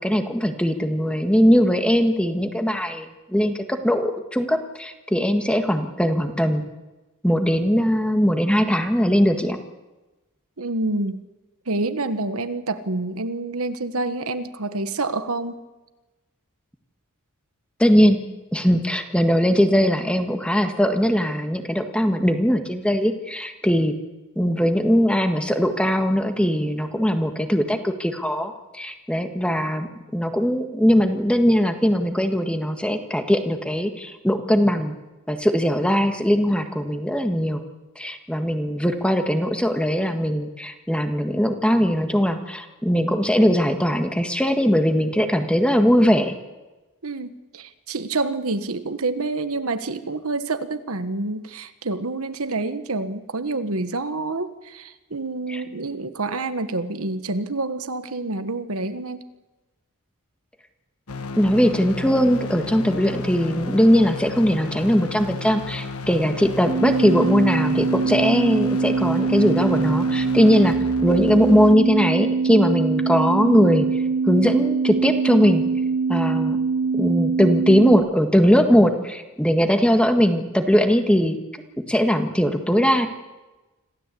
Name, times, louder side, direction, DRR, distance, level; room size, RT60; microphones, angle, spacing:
voice 1, 0.0-6.7 7.2-9.6 17.8-18.2 18.5-23.9 24.3-29.9 30.1-34.9 35.3-37.6 37.9-46.3 55.5-55.6 61.4-70.8 71.0-73.9 74.3-75.6 76.1-76.6 76.9-81.4 81.9-83.1, equal, 5° left, 6 dB, 1.7 m, -20 dB
voice 2, 10.6-11.2 11.7-15.6 47.0-59.2, right 2 dB, 70° right, 10 dB, 1.3 m, -27 dB
sound 1, 61.1-71.7, left 3 dB, 75° left, 1.3 m, -33 dB
sound 2, 66.7-77.9, right 4 dB, 25° right, 3.1 m, -23 dB
26.0 x 16.0 x 8.4 m, 1.1 s
head